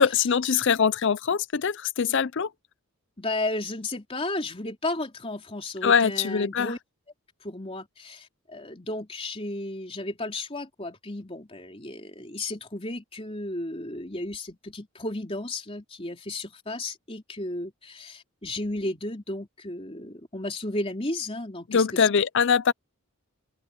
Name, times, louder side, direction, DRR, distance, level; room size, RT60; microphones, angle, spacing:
voice 1, 0.0-2.5 5.8-6.7 21.7-22.7, left 6 dB, 55° left, 0.5 m, -22 dB
voice 2, 3.2-6.8 7.4-22.1, left 2 dB, 25° left, 3.6 m, -34 dB
open air
head